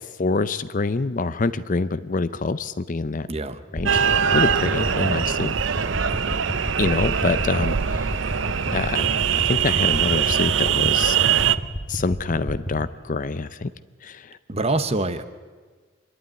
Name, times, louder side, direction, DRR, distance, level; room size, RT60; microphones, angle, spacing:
voice 1, 0.2-3.3 3.7-4.0 4.3-5.5 6.8-8.4 8.7-11.2 11.9-13.7 14.0-14.2, left 3 dB, 40° left, 14 dB, 0.6 m, -26 dB
voice 2, 3.3-3.6 14.5-15.2, right 2 dB, 30° right, 11 dB, 0.9 m, -25 dB
sound 1, 3.7-12.7, equal, 15° left, 2.0 m, -32 dB
sound 2, 3.9-11.6, right 8 dB, 60° right, 0.6 m, -22 dB
25.0 x 11.5 x 9.4 m, 1.5 s
head